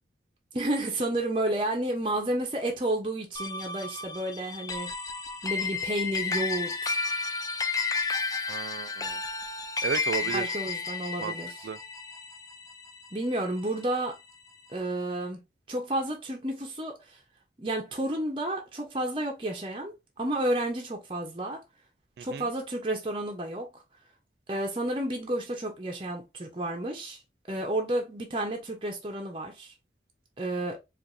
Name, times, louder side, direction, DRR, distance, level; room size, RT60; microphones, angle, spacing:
voice 1, 0.5-4.9 5.4-7.0 10.3-11.5 13.1-14.2 14.7-15.4 15.7-17.0 17.6-21.6 22.2-23.7 24.5-27.2 27.5-29.7 30.4-30.8, right 1 dB, 30° right, 0.8 m, -31 dB
sound 1, 3.4-14.0, left 4 dB, 20° left, 0.4 m, -32 dB
voice 2, 8.5-9.2 9.8-10.5 11.2-11.4 11.6-11.8 22.2-22.5, right 6 dB, 65° right, 0.3 m, -33 dB
4.6 x 2.6 x 2.6 m
head